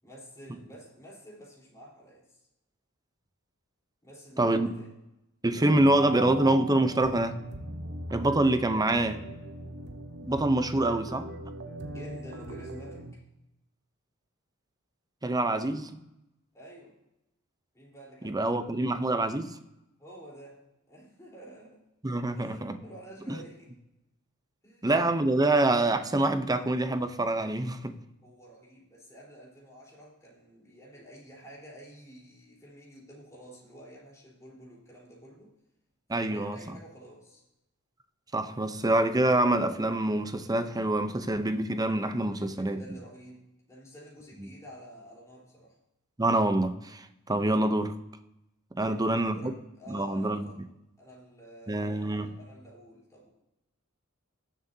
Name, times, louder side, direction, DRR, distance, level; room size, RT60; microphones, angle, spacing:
voice 1, 0.0-2.4 4.0-4.9 10.8-11.0 11.9-13.0 16.5-17.0 17.7-18.6 20.0-20.6 20.9-21.8 22.3-23.7 24.6-24.9 28.2-35.5 36.2-37.4 42.2-45.8 48.8-50.6 51.0-53.3, right 1 dB, 15° left, 3.9 m, -50 dB
voice 2, 4.4-4.7 5.4-7.4 8.1-9.2 10.2-11.2 15.2-15.9 18.2-19.6 22.0-22.8 23.3-23.4 24.8-28.0 36.1-36.6 38.3-42.8 44.4-44.5 46.2-47.9 48.8-49.5 49.9-50.5 51.7-52.3, right 1 dB, 15° right, 0.7 m, -26 dB
sound 1, 5.6-13.1, right 1 dB, 50° right, 1.0 m, -39 dB
19.0 x 7.5 x 2.8 m
head